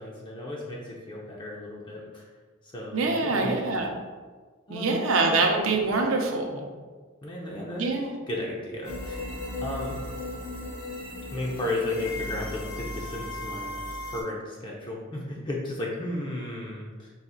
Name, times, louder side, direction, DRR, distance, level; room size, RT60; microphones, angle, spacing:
voice 1, 0.0-2.3 2.6-3.6 4.7-5.4 7.2-9.3 9.6-10.0 11.3-13.7 14.0-17.1, left 1 dB, 25° left, -3 dB, 0.5 m, -34 dB
voice 2, 2.9-3.9 4.7-6.7 7.8-8.0, right 3 dB, 70° right, 2 dB, 0.6 m, -24 dB
sound 1, 8.8-14.2, left 1 dB, 90° left, 1.0 m, -36 dB
4.1 x 2.4 x 3.7 m, 1.4 s
head